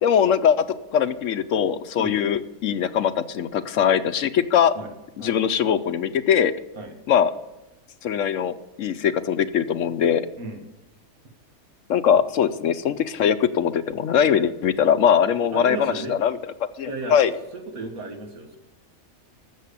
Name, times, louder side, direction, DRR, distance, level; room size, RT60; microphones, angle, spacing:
voice 1, 0.0-4.7 5.2-6.5 7.1-7.3 8.0-10.3 11.9-16.4 16.8-17.3, left 8 dB, 65° left, 12 dB, 1.0 m, -21 dB
voice 2, 15.5-16.2 16.8-17.2 17.5-18.6, right 3 dB, 75° right, 4 dB, 2.2 m, -34 dB
13.0 x 7.5 x 8.4 m, 1.0 s
omnidirectional pair, 1.5 m